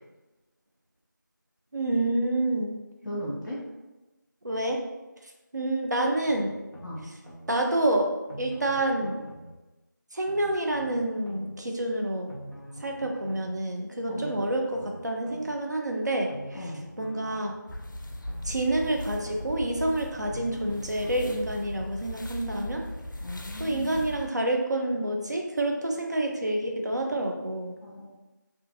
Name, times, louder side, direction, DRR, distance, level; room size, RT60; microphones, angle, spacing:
voice 1, 1.7-2.8 4.4-4.8 5.5-6.6 7.5-8.1 8.4-9.3 10.1-12.3 12.8-16.7 17.0-17.6 18.4-22.8 23.6-27.7, right 1 dB, 60° right, 2 dB, 0.4 m, -28 dB
voice 2, 3.0-3.6 6.8-7.0 14.1-14.4 16.5-16.8 23.2-24.0 27.8-28.2, left 1 dB, ahead, -20 dB, 0.4 m, -37 dB
sound 1, 6.3-7.5 8.3-9.5 10.2-11.5 12.3-13.5 14.2-15.5 16.3-17.5 18.2-19.5 20.3-21.5 22.2-22.3, right 1 dB, 90° right, 1.0 m, -45 dB
sound 2, 17.7-24.3, left 1 dB, 70° left, 0.4 m, -38 dB
2.6 x 2.5 x 2.5 m, 1.1 s
figure-of-eight pair, 180°, 11 cm